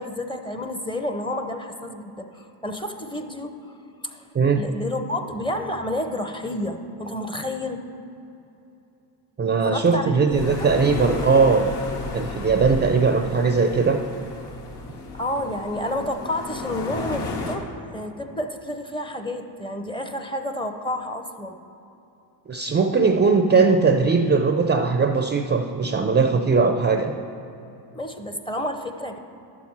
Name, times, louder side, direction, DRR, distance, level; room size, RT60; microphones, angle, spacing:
voice 1, 0.0-4.3 4.6-7.8 9.6-10.7 15.1-21.6 27.9-29.3, left 1 dB, 10° left, 6 dB, 0.7 m, -30 dB
voice 2, 9.4-11.7 12.1-14.0 22.5-27.1, right 4 dB, 25° right, 5 dB, 0.5 m, -19 dB
sound 1, 10.3-17.6, left 3 dB, 55° left, 1.5 m, -33 dB
11.5 x 7.3 x 4.6 m, 2.9 s
cardioid pair, 90°, 47 cm